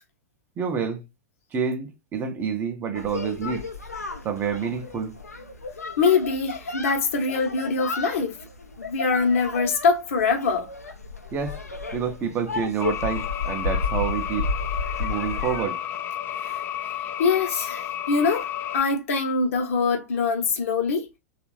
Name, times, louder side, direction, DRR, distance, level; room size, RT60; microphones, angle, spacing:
voice 1, 0.6-1.0 1.5-3.7 4.2-5.2 11.3-11.6 11.9-14.5 15.0-15.8, right 6 dB, 25° right, 0.6 m, -28 dB
sound 1, 2.9-15.7, left 3 dB, 85° left, 0.6 m, -33 dB
voice 2, 6.0-8.3 8.8-10.7 16.5-16.6 17.2-18.5 18.7-21.1, left 5 dB, 55° left, 0.9 m, -23 dB
sound 2, 12.8-18.8, left 10 dB, 25° left, 0.3 m, -32 dB
3.3 x 2.4 x 3.0 m
figure-of-eight pair, 95°, 8 cm